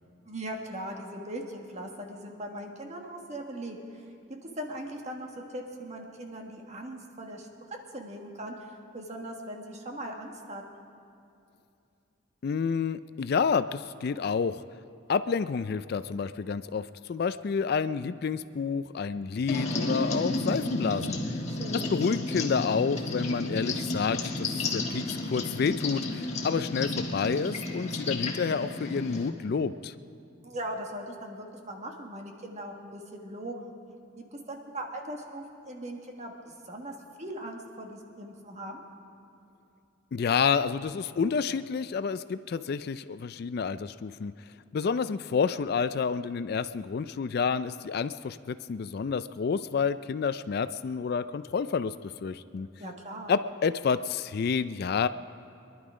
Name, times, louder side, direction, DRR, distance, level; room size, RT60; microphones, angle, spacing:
voice 1, 0.2-4.0 4.5-10.6 21.5-22.0 30.4-33.7 34.2-38.8 52.8-53.3, right 1 dB, 35° right, 2 dB, 1.5 m, -40 dB
voice 2, 12.4-14.6 15.1-21.2 21.7-29.9 40.1-44.3 44.7-52.7 53.3-55.1, left 5 dB, 50° left, 13 dB, 0.3 m, -29 dB
sound 1, 19.5-29.3, left 2 dB, 35° left, 1.4 m, -32 dB
24.5 x 11.0 x 5.0 m, 2.6 s
head